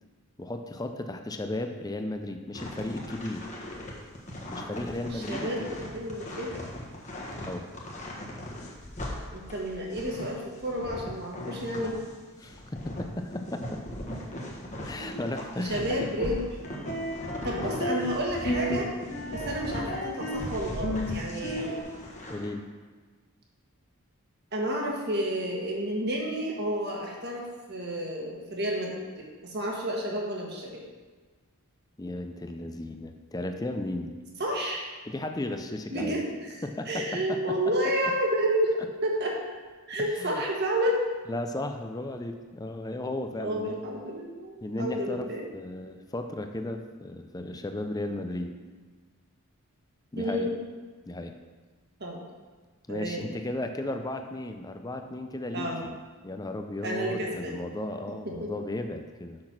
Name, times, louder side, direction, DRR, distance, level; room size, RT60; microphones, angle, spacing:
voice 1, 0.4-3.4 4.5-5.8 7.4-7.7 12.4-13.8 14.8-16.0 22.3-22.6 32.0-34.2 35.1-36.2 36.6-37.6 40.0-40.4 41.3-43.8 44.6-48.6 50.1-50.5 51.1-51.4 52.9-56.0 56.2-59.4, left 1 dB, 15° left, 6 dB, 0.5 m, -35 dB
sound 1, 2.5-12.1 12.4-19.8 20.2-22.5, left 1 dB, 35° left, 1.3 m, -39 dB
voice 2, 5.1-5.6 5.9-6.5 9.3-12.0 15.0-15.1 15.6-16.5 17.4-18.8 19.3-21.8 24.5-28.9 29.4-30.8 34.4-34.9 35.9-36.6 36.8-39.4 39.9-41.0 43.4-45.5 50.2-50.5 52.0-52.2 52.9-53.3 55.5-55.8 56.8-57.6 58.2-58.5, equal, 50° right, -1 dB, 1.5 m, -30 dB
sound 2, 16.6-18.1 18.5-18.8 19.1-20.5 20.8-21.8, equal, 65° left, 2.3 m, -32 dB
6.5 x 6.2 x 5.9 m, 1.4 s
head